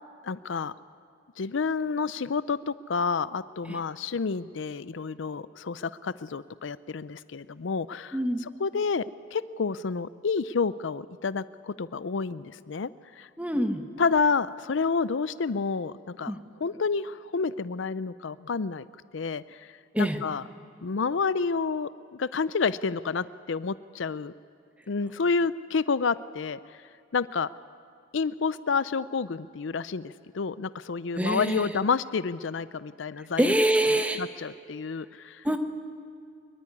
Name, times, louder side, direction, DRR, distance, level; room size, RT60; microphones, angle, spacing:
voice 1, 0.2-0.7 1.4-9.1 9.3-12.9 13.2-13.3 14.0-16.3 16.6-18.8 19.1-20.4 20.8-24.3 24.9-26.8 27.1-27.5 28.1-33.5 33.9-35.5, left 5 dB, 75° left, 16 dB, 0.5 m, -29 dB
voice 2, 8.1-8.4 13.4-13.8 16.3-16.4 19.9-20.2 31.2-31.7 33.4-34.2 35.4-35.6, right 1 dB, 5° right, 6 dB, 1.4 m, -25 dB
23.5 x 23.0 x 9.7 m, 2.4 s
head